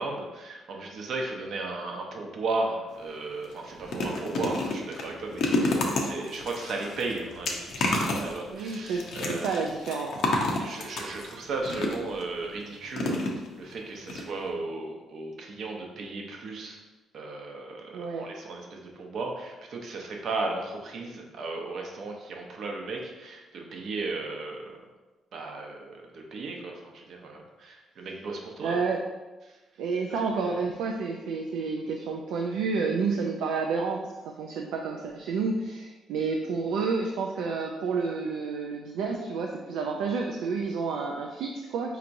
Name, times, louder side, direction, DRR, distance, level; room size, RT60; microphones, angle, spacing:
voice 1, 0.0-9.7 10.6-13.2 13.6-16.8 17.1-24.8 25.3-28.8 29.4-29.6 30.4-30.6, right 3 dB, 65° right, 1 dB, 0.7 m, -35 dB
sound 1, 2.9-3.1 3.4-12.2 12.9-13.7 14.1-14.2 14.5-14.6, left 2 dB, 70° left, 0.6 m, -30 dB
voice 2, 8.5-10.2 17.9-18.3 28.6-29.0 29.8-34.0 34.4-42.0, right 4 dB, 90° right, 1 dB, 0.3 m, -30 dB
4.6 x 2.8 x 2.5 m, 1.2 s
cardioid pair, 90°, 0 cm